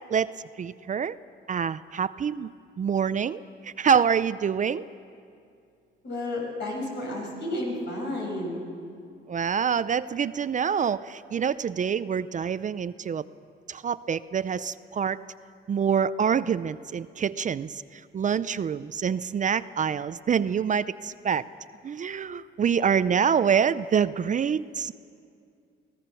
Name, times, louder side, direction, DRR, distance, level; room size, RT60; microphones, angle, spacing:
voice 1, 0.1-1.1 1.5-2.5 2.8-4.8 9.3-13.2 13.7-15.2 15.7-17.7 18.1-21.4 21.8-24.9, right 7 dB, 40° right, 15 dB, 0.5 m, -26 dB
voice 2, 6.0-8.6, left 1 dB, 60° left, -1 dB, 6.8 m, -31 dB
24.5 x 17.5 x 6.9 m, 2.4 s
cardioid pair, 90°, 20 cm